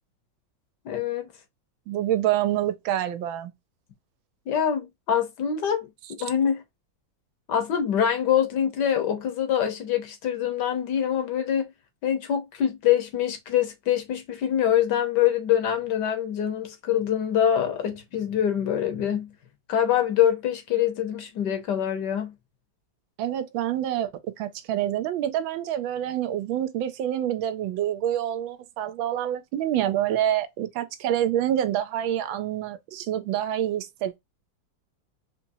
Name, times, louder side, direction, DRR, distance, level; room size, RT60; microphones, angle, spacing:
voice 1, 0.8-1.3 4.5-5.9 6.2-6.6 7.5-11.7 12.0-19.3 19.7-22.3, left 9 dB, 65° left, 1.4 m, -24 dB
voice 2, 1.9-3.5 6.2-6.3 23.2-24.1 24.4-34.2, right 11 dB, 80° right, 1.4 m, -27 dB
4.1 x 3.0 x 2.6 m
omnidirectional pair, 2.1 m